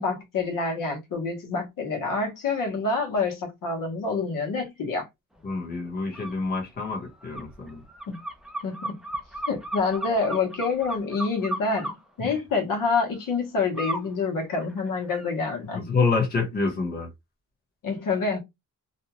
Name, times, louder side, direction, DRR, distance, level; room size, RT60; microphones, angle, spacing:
voice 1, 0.0-5.1 8.1-8.2 8.6-8.9 9.5-15.9 17.8-18.4, left 4 dB, 80° left, 1.1 m, -27 dB
voice 2, 5.4-7.8 12.2-12.4 15.7-17.1, left 4 dB, 30° left, 1.0 m, -27 dB
sound 1, 6.1-6.3 6.8-11.9 13.8-14.1 14.5-15.3, right 1 dB, ahead, 0.4 m, -34 dB
2.6 x 2.2 x 2.9 m
wide cardioid pair, 180°, 33 cm